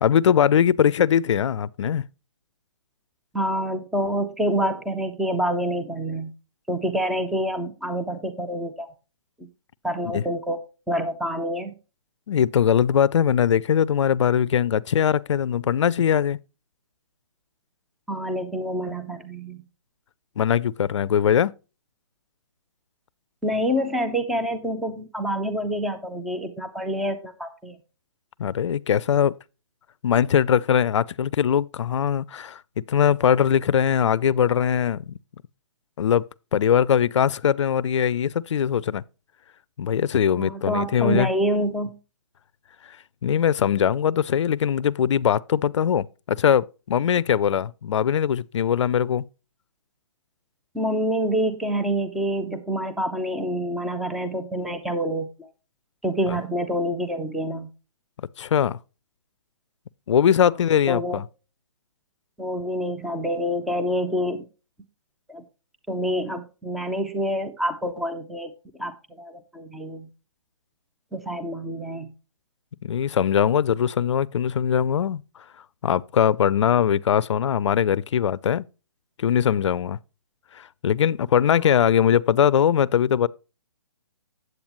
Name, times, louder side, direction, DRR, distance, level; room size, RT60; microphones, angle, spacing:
voice 1, 0.0-2.0 10.1-10.2 12.3-16.4 20.4-21.5 28.4-29.4 30.0-32.6 32.9-35.2 36.0-36.3 36.5-39.0 39.8-41.3 42.8-43.0 43.2-49.2 56.3-56.4 58.4-58.8 60.1-61.2 72.8-75.2 75.8-78.7 79.2-80.0 80.5-83.3, left 8 dB, 65° left, 0.4 m, -21 dB
voice 2, 3.3-6.3 6.7-8.9 9.4-9.5 9.8-10.6 10.9-11.7 18.1-19.6 23.4-27.8 40.4-41.9 50.7-55.5 56.0-57.7 60.9-61.2 62.4-64.4 65.3-65.4 65.9-70.1 71.1-72.1 81.6-81.7, equal, ahead, 0.4 m, -27 dB
8.7 x 7.9 x 3.0 m
hypercardioid pair, 150°, 16 cm